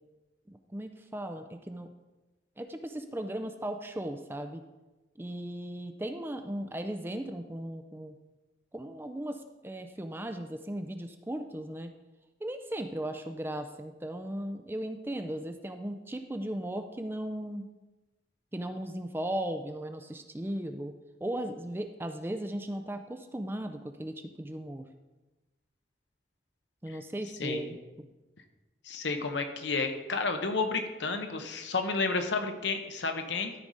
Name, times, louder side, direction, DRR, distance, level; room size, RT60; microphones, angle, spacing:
voice 1, 0.5-1.9 2.6-4.6 5.2-8.1 8.7-11.9 12.4-17.7 18.5-20.9 21.2-24.8 26.8-27.8, right 1 dB, 10° right, 7 dB, 0.4 m, -37 dB
voice 2, 27.4-27.7 28.8-33.5, left 4 dB, 80° left, 6 dB, 0.9 m, -31 dB
13.0 x 4.9 x 4.0 m, 1.1 s
head